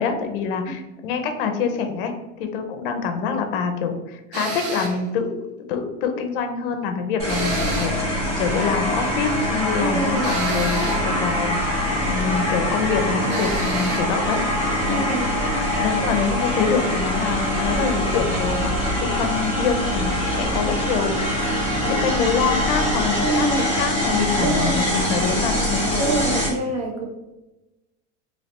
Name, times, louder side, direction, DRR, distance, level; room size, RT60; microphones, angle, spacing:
voice 1, 0.0-2.1 2.4-5.3 5.7-11.7 12.1-14.4 14.9-15.1 15.3-15.4 15.8-21.5 21.8-26.1, left 5 dB, 50° left, 6 dB, 0.5 m, -25 dB
sound 1, 4.3-5.0 7.3-8.1 10.2-11.1 13.3-14.1, right 4 dB, 35° right, 0.5 m, -30 dB
sound 2, 7.2-26.5, left 1 dB, 20° right, 1.3 m, -23 dB
voice 2, 9.8-10.4 14.8-15.2 23.2-23.6 24.4-24.9 26.0-27.1, right 3 dB, 65° right, 1 dB, 1.0 m, -25 dB
3.1 x 2.8 x 2.9 m, 1.0 s
supercardioid pair, 175°, 36 cm